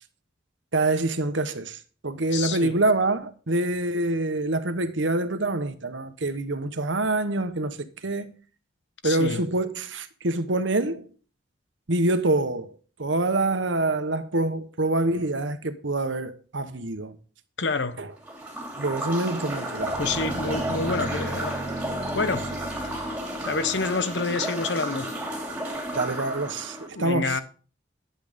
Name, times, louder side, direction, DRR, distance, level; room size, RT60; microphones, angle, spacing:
voice 1, 0.7-7.8 8.0-8.4 9.0-11.1 11.9-12.7 13.0-17.1 18.0-18.1 18.8-20.2 25.9-27.4, right 2 dB, 80° right, 1.2 m, -26 dB
voice 2, 2.3-2.8 9.0-9.4 17.6-18.0 19.9-21.6 22.1-25.1 26.9-27.4, left 4 dB, 65° left, 0.9 m, -28 dB
sound 1, 18.2-26.9, right 1 dB, 5° right, 2.9 m, -32 dB
sound 2, 19.8-24.2, right 2 dB, 30° right, 0.5 m, -36 dB
11.0 x 7.9 x 5.1 m
head